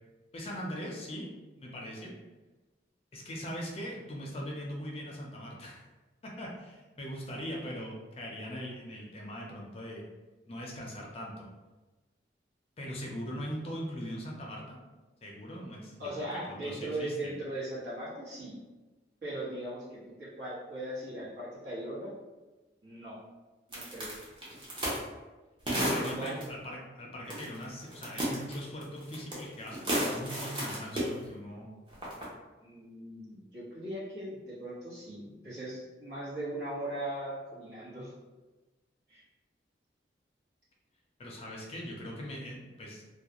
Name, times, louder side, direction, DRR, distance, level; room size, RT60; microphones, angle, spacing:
voice 1, 0.3-1.3 1.6-2.2 3.1-5.8 6.2-10.0 10.5-11.5 12.8-14.8 15.2-17.3 25.7-31.7 41.2-43.0, equal, 35° left, -2 dB, 0.4 m, -40 dB
voice 2, 16.0-18.5 19.2-22.1 22.8-23.2 23.7-24.1 26.0-26.4 32.6-38.1 39.1-39.2, right 1 dB, 70° right, -9 dB, 1.1 m, -39 dB
sound 1, 23.7-25.0 25.7-26.4 27.3-27.6 27.9-29.4 29.7-31.1 31.9-32.2, equal, 30° right, 0.6 m, -32 dB
2.3 x 2.1 x 2.8 m, 1.2 s
head